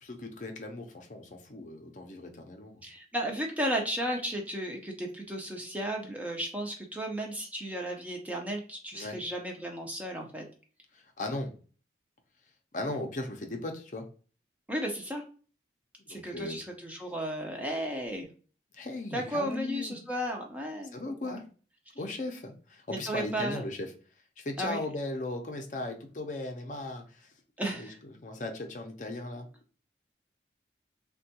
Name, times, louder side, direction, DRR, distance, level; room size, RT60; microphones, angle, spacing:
voice 1, 0.0-2.8 8.9-9.2 10.9-11.5 12.7-14.1 16.0-16.6 18.7-20.0 20.9-21.4 22.0-23.9 24.4-27.3 27.6-27.9 28.2-29.5, left 2 dB, 45° left, 4 dB, 0.5 m, -37 dB
voice 2, 2.8-10.5 14.7-15.2 16.1-18.3 19.1-21.4 22.9-23.6 24.6-24.8 27.6-28.0, right 1 dB, 10° right, 1 dB, 0.5 m, -34 dB
3.5 x 2.2 x 2.7 m, 0.39 s
head